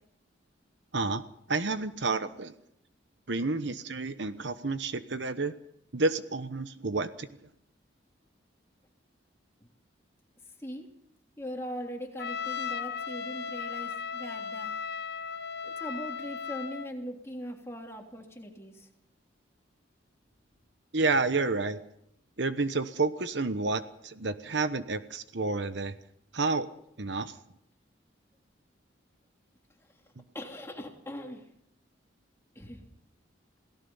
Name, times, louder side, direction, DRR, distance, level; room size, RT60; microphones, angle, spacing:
voice 1, 1.5-2.5 3.3-5.5 5.9-7.3 20.9-21.8 22.4-25.9 26.3-26.7 27.0-27.4 30.2-30.3, right 3 dB, 65° right, 11 dB, 1.1 m, -30 dB
voice 2, 11.4-14.7 15.6-18.9 30.3-31.5 32.5-32.8, equal, 15° left, 0 dB, 3.3 m, -40 dB
Trumpet, 12.2-16.9, left 6 dB, 55° left, 1.4 m, -36 dB
27.5 x 17.5 x 5.7 m, 0.74 s
head